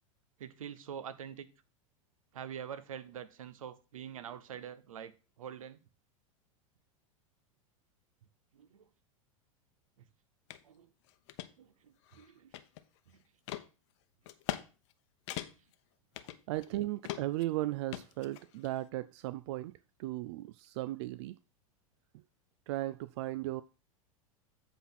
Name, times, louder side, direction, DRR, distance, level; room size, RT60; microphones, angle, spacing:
voice 1, 0.4-1.5 2.3-5.8 8.5-8.9 10.6-10.9 11.6-12.5 13.1-13.2 16.2-16.3, right 8 dB, 75° right, 0.8 m, -45 dB
sound 1, 10.5-10.6 11.1-11.5 12.0-13.0 13.5-13.7 14.3-14.6 14.9-15.0 15.3-15.7 16.1-16.7 17.0-17.4 17.9-18.7, left 14 dB, 55° left, 0.8 m, -41 dB
voice 2, 16.5-19.7 20.0-21.4 22.1-22.2 22.7-23.6, right 16 dB, 55° right, 0.4 m, -36 dB
7.9 x 4.3 x 6.0 m
hypercardioid pair, 90°, 18 cm